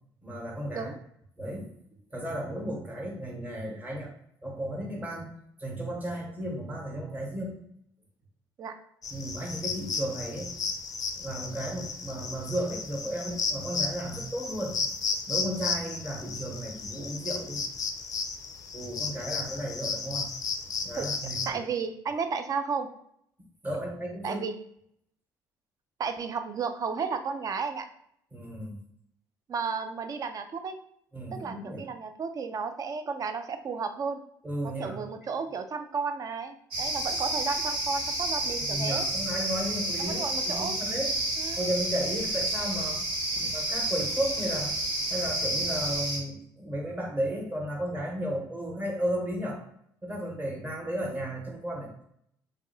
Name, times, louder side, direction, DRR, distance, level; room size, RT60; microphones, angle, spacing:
voice 1, 0.2-0.9 1.4-1.7 2.1-4.1 4.4-5.3 5.6-7.6 9.1-10.5 11.2-14.8 15.3-17.6 18.7-20.3 20.8-21.6 23.6-24.4 28.3-28.8 31.1-31.8 34.4-35.1 38.7-41.1 41.6-43.0 43.4-44.7 45.1-49.6 50.0-51.9, right 1 dB, 20° right, -1 dB, 0.9 m, -34 dB
sound 1, 9.0-21.5, left 5 dB, 40° left, 0.4 m, -34 dB
voice 2, 21.5-22.9 24.2-24.6 26.0-27.9 29.5-30.8 31.3-34.2 34.6-39.1 40.0-40.8 41.4-41.7, right 5 dB, 40° right, 8 dB, 0.3 m, -33 dB
sound 2, 36.7-46.2, right 1 dB, 70° right, 0.9 m, -30 dB
2.5 x 2.0 x 2.6 m, 0.70 s
hypercardioid pair, 60°, 9 cm